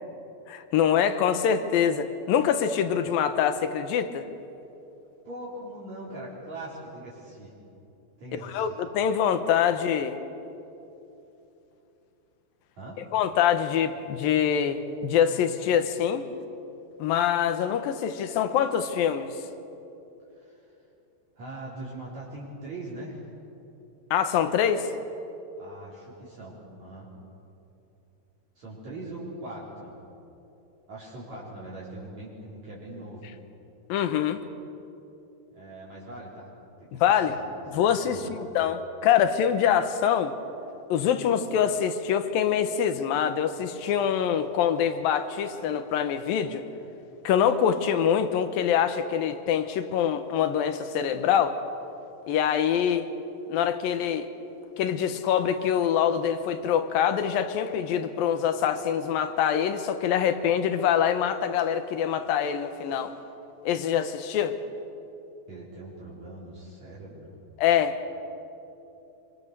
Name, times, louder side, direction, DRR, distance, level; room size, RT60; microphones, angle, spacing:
voice 1, 0.5-4.3 8.5-10.2 13.1-16.3 17.0-19.3 24.1-24.9 33.9-34.4 36.9-37.4 37.7-40.4 40.9-46.6 47.2-51.6 52.3-53.1 53.5-54.3 54.8-63.1 63.6-64.6 67.6-68.0, left 8 dB, 75° left, 9 dB, 2.8 m, -24 dB
voice 2, 5.2-7.6 8.2-8.8 12.8-13.0 20.3-20.8 21.4-23.3 25.6-27.1 28.6-30.0 30.9-33.3 35.5-36.5 36.8-37.4 37.9-38.4 65.5-67.4, right 1 dB, 45° right, -7 dB, 5.3 m, -41 dB
26.0 x 25.5 x 6.8 m, 2.9 s
omnidirectional pair, 4.3 m